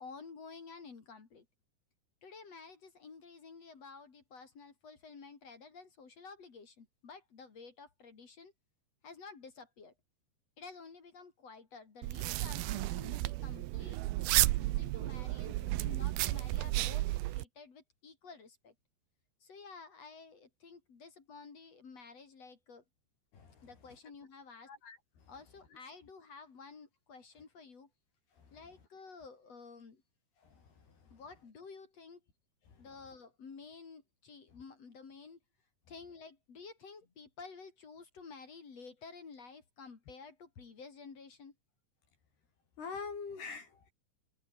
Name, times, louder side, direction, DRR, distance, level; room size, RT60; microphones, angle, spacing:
voice 1, 0.0-1.5 2.2-8.5 9.0-9.9 10.6-14.0 14.3-17.0 17.3-18.7 19.4-22.8 23.6-24.7 25.3-27.9 28.5-30.0 31.1-32.2 32.8-35.4 35.9-41.5, left 4 dB, 40° left, 3.6 m, -52 dB
sound 1, 12.0-17.4, right 18 dB, 80° right, 2.2 m, -32 dB
voice 2, 24.7-25.0 42.8-43.9, left 5 dB, 60° left, 7.0 m, -43 dB
omnidirectional pair, 5.2 m